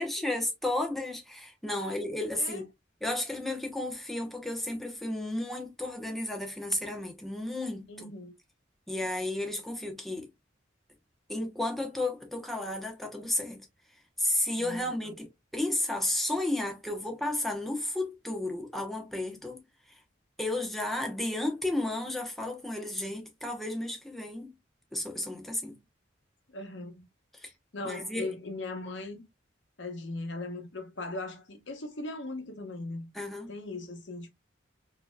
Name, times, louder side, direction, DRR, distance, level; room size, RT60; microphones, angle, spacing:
voice 1, 0.0-2.7 3.0-8.1 8.9-10.3 11.3-13.7 14.2-15.3 15.5-19.6 20.4-24.5 24.9-25.8 27.3-27.5 27.8-28.3 33.1-33.5, left 1 dB, ahead, 0.8 m, -33 dB
voice 2, 2.4-2.7 7.9-8.3 14.6-15.1 26.5-27.1 27.4-29.3 29.8-33.1 33.5-34.3, left 2 dB, 65° left, 0.9 m, -39 dB
4.2 x 2.7 x 2.2 m
head